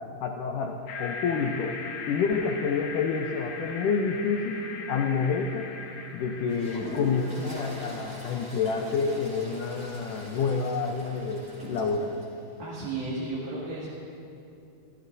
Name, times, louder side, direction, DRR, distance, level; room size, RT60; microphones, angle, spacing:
voice 1, 0.2-1.8 2.1-5.7 6.1-12.2, left 5 dB, 90° left, 2 dB, 1.8 m, -28 dB
sound 1, 0.9-9.1, left 4 dB, 65° left, 2.2 m, -40 dB
Toilet flush, 6.5-12.3, equal, 20° right, 2.0 m, -42 dB
voice 2, 12.6-13.9, right 2 dB, 60° right, -8 dB, 4.0 m, -33 dB
29.0 x 14.5 x 2.7 m, 2.7 s
omnidirectional pair, 4.9 m